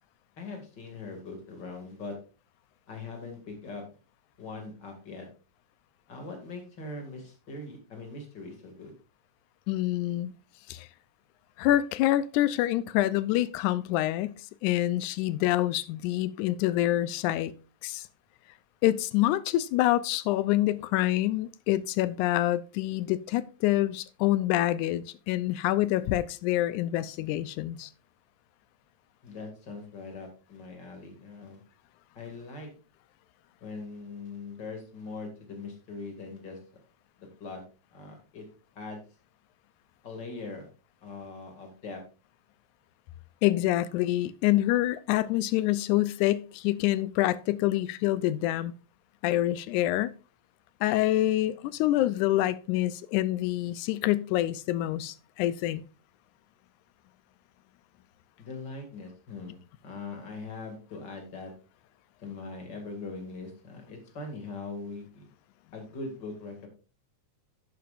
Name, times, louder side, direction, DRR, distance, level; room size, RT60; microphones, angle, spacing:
voice 1, 0.4-2.2 2.9-3.8 4.4-5.3 6.1-8.9 29.2-31.6 32.1-32.7 33.6-36.6 37.2-37.6 37.9-38.5 38.8-39.0 40.0-40.7 41.0-42.0 58.4-61.5 62.2-65.3 65.7-66.7, left 3 dB, 40° left, 2.7 m, -41 dB
voice 2, 9.7-10.3 10.7-10.9 11.6-14.3 14.6-17.5 17.8-18.1 18.8-27.9 43.4-48.7 49.2-50.1 50.8-55.8, left 15 dB, 85° left, 2.0 m, -26 dB
10.5 x 9.3 x 2.5 m
omnidirectional pair, 3.5 m